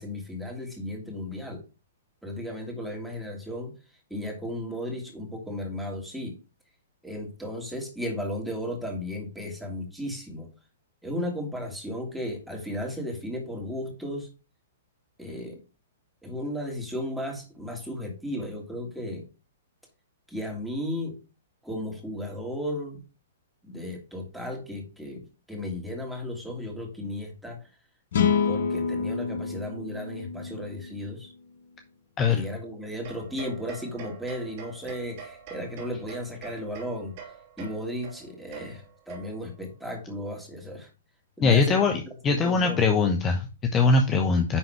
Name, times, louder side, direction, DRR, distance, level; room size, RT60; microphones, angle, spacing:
voice 1, 0.0-1.6 2.2-3.8 4.1-6.4 7.0-10.5 11.0-14.3 15.2-15.6 16.2-19.3 20.3-21.2 21.6-23.0 23.6-27.7 28.4-31.3 32.3-37.2 37.6-40.9 41.4-42.8, left 1 dB, ahead, 0 dB, 2.5 m, -35 dB
sound 1, 28.1-31.4, left 6 dB, 65° left, 1.2 m, -28 dB
sound 2, 33.0-39.6, right 6 dB, 50° right, 2.8 m, -45 dB
voice 2, 41.4-44.6, left 4 dB, 25° left, 4 dB, 1.0 m, -22 dB
10.0 x 4.0 x 4.5 m, 0.32 s
hypercardioid pair, 120°, 0 cm